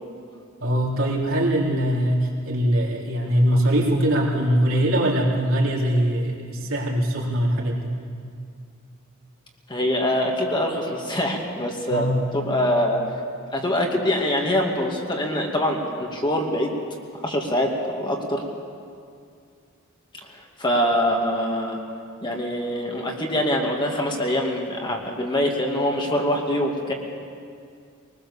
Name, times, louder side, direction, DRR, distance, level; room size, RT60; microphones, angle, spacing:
voice 1, 0.6-8.0 11.9-12.2, equal, 65° right, -3 dB, 3.7 m, -22 dB
voice 2, 9.7-12.1 12.3-13.0 13.5-16.7 17.2-18.4 20.3-21.8 22.2-26.9, left 1 dB, 20° left, 0 dB, 2.3 m, -24 dB
22.5 x 20.5 x 7.2 m, 2.3 s
head